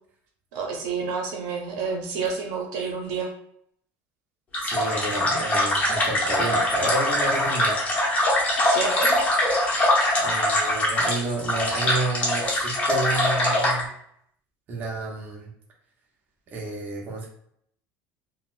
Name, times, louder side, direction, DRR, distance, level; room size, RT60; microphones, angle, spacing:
voice 1, 0.5-3.3 8.6-9.2, right 5 dB, 80° right, 2 dB, 0.7 m, -29 dB
sound 1, 4.5-13.8, left 1 dB, 25° left, 0.8 m, -23 dB
voice 2, 4.6-7.8 10.2-13.9 14.7-15.5 16.5-17.3, right 2 dB, 30° right, -2 dB, 0.7 m, -30 dB
4.0 x 2.0 x 2.4 m, 0.70 s
cardioid pair, 170°, 6 cm